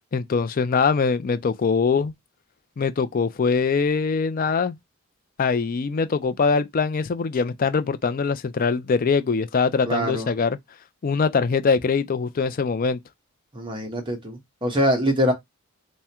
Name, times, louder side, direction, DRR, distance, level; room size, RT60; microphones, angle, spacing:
voice 1, 0.1-2.1 2.8-4.8 5.4-10.6 11.0-13.0, left 5 dB, 40° left, 0.4 m, -22 dB
voice 2, 9.8-10.3 13.5-15.3, equal, 25° right, 1.1 m, -23 dB
3.5 x 2.1 x 4.3 m
head